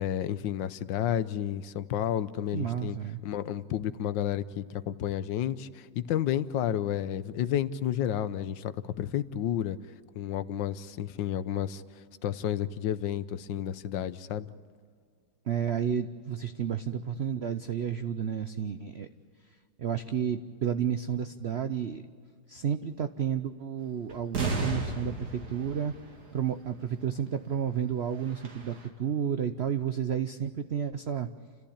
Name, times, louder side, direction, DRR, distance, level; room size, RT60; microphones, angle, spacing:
voice 1, 0.0-3.0 3.2-8.7 9.0-9.8 10.1-11.8 12.2-14.5, left 10 dB, 80° left, 14 dB, 1.4 m, -31 dB
voice 2, 2.5-3.2 15.5-19.1 19.8-22.0 22.5-25.9 26.3-31.3, right 8 dB, 80° right, 10 dB, 0.5 m, -31 dB
sound 1, 24.1-26.7 27.0-27.1 27.7-27.8 28.1-28.8, right 2 dB, 55° right, 2.7 m, -34 dB
29.0 x 14.5 x 8.6 m, 2.1 s
omnidirectional pair, 2.0 m